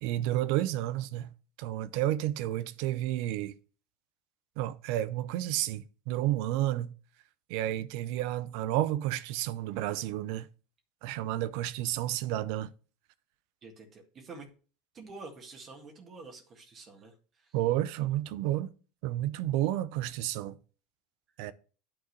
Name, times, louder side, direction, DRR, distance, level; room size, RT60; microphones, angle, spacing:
voice 1, 0.0-1.3 1.6-3.5 4.6-6.9 7.5-10.5 11.0-12.7 17.5-18.7 19.0-20.6 21.4-21.5, right 14 dB, 65° right, 0.5 m, -31 dB
voice 2, 13.6-14.5 14.9-17.5, right 3 dB, 40° right, 1.7 m, -48 dB
8.9 x 3.6 x 6.5 m
hypercardioid pair, 80°, 0 cm